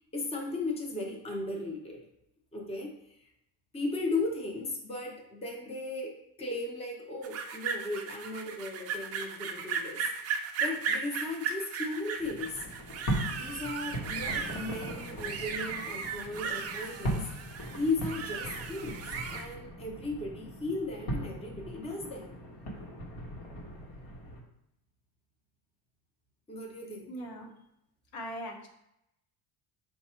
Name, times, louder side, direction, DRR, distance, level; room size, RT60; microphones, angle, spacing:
voice 1, 0.1-2.0 2.5-2.9 3.2-3.3 3.7-10.0 10.6-12.6 13.3-17.2 17.7-19.0 19.3-22.3 26.5-27.1, left 2 dB, 10° left, 0 dB, 0.7 m, -36 dB
sound 1, 7.2-19.5, right 5 dB, 35° right, 0.4 m, -36 dB
sound 2, 12.2-24.4, right 1 dB, 55° left, 1.1 m, -39 dB
voice 2, 27.1-27.5 28.1-28.7, equal, 80° left, 1 dB, 1.1 m, -39 dB
4.5 x 2.3 x 4.3 m, 0.81 s
cardioid pair, 120°, 49 cm